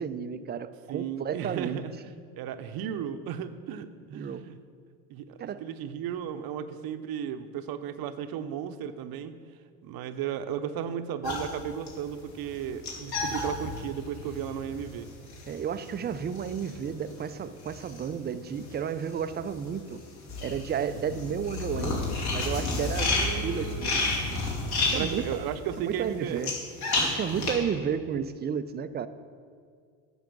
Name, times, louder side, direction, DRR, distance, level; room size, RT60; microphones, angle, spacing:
voice 1, 0.0-1.8 4.1-4.4 5.4-5.6 15.5-20.0 20.4-22.0 22.3-24.0 24.9-25.5 25.9-26.5 27.0-29.1, right 7 dB, 25° right, 13 dB, 0.4 m, -32 dB
voice 2, 0.9-2.0 2.4-4.6 5.1-9.3 9.8-15.1 23.0-24.1 24.9-26.5 27.3-27.5, right 9 dB, 55° right, 10 dB, 0.8 m, -35 dB
sound 1, 11.2-18.7 19.0-27.5, left 3 dB, 55° left, 2.8 m, -31 dB
9.2 x 6.5 x 6.1 m, 2.2 s
hypercardioid pair, 80°, 45 cm